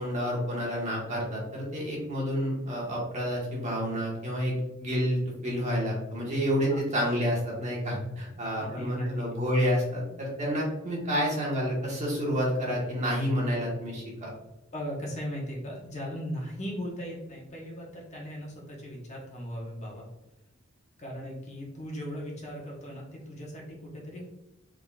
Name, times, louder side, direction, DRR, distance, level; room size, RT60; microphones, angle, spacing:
voice 1, 0.0-14.3, equal, 35° right, -3 dB, 1.2 m, -29 dB
voice 2, 8.6-9.1 14.7-20.1 21.0-24.2, equal, 35° left, -3 dB, 1.0 m, -38 dB
3.9 x 3.6 x 2.3 m, 0.96 s
head